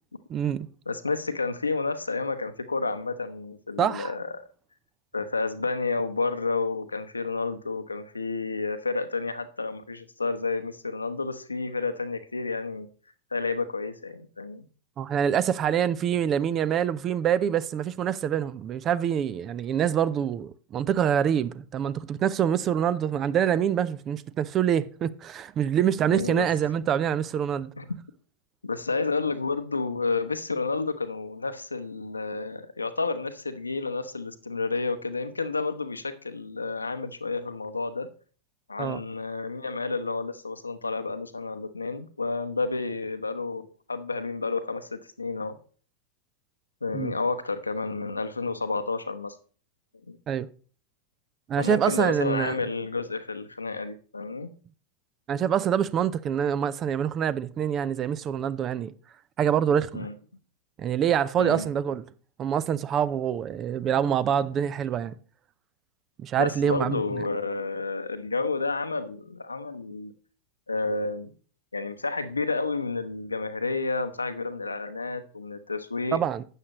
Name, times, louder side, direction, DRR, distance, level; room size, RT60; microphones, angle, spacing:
voice 1, 0.3-0.7 3.8-4.1 15.0-27.7 38.8-39.0 46.9-47.1 50.3-50.5 51.5-52.6 55.3-58.9 59.4-60.1 60.8-62.0 62.4-65.1 66.2-67.0 76.1-76.4, right 9 dB, 30° right, 0.5 m, -25 dB
voice 2, 0.9-4.4 5.1-12.9 13.3-14.7 26.1-26.5 27.8-27.9 28.6-38.1 38.7-45.6 46.8-49.4 50.1-50.2 51.6-54.5 59.9-60.1 61.4-61.7 66.4-70.1 70.7-71.3 71.7-76.2, left 3 dB, 80° left, 0.9 m, -30 dB
12.0 x 8.5 x 3.0 m
figure-of-eight pair, 90°, 0 cm